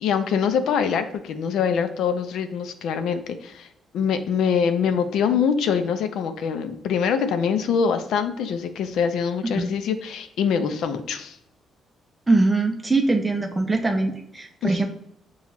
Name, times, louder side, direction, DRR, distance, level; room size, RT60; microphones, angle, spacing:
voice 1, 0.0-3.7 3.9-11.4 14.6-14.8, left 7 dB, 80° left, 9 dB, 0.4 m, -24 dB
voice 2, 12.3-14.9, right 2 dB, 15° right, 3 dB, 0.5 m, -22 dB
5.7 x 2.3 x 3.0 m, 0.76 s
cardioid pair, 90°, 0 cm